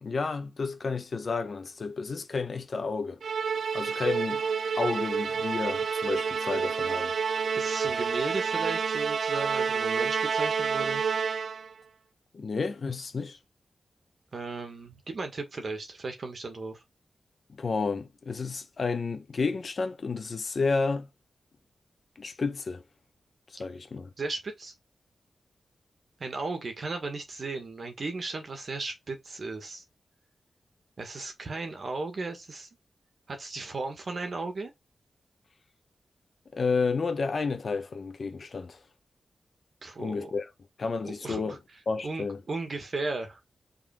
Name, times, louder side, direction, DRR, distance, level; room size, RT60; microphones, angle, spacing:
voice 1, 0.0-3.2 3.7-4.4 4.7-7.1 12.3-13.4 17.6-21.1 22.2-22.8 23.6-24.1 36.5-38.8 40.0-40.5 40.8-41.6 41.9-42.4, left 4 dB, 55° left, 1.1 m, -31 dB
Musical instrument, 3.2-11.7, right 6 dB, 85° right, 0.4 m, -29 dB
voice 2, 7.6-11.0 14.3-16.8 24.2-24.7 26.2-29.8 31.0-32.7 33.3-34.7 39.8-40.3 41.0-41.6 42.0-43.4, right 3 dB, 55° right, 1.7 m, -35 dB
5.6 x 4.0 x 4.4 m
wide cardioid pair, 110°, 0 cm